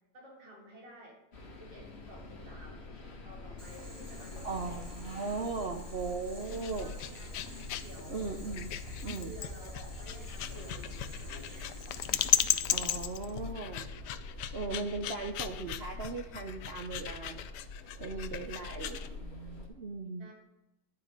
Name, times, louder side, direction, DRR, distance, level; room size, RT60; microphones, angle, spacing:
voice 1, 0.1-1.2 1.6-2.9 3.2-4.8 6.8-7.4 7.8-8.3 9.2-10.8 11.2-11.7 20.2-20.3, right 1 dB, 85° right, -2 dB, 3.7 m, -52 dB
sound 1, 1.3-19.7, left 3 dB, 35° left, 1.9 m, -45 dB
Boiling, 3.6-12.3, equal, 15° right, 2.1 m, -52 dB
voice 2, 4.4-6.9 8.1-8.7 9.0-9.3 12.7-13.9 14.5-17.4 18.0-20.3, right 4 dB, 60° right, 4 dB, 0.6 m, -38 dB
sound 2, 6.4-19.1, left 12 dB, 75° left, 1.2 m, -36 dB
11.5 x 8.6 x 5.2 m, 0.94 s
omnidirectional pair, 1.9 m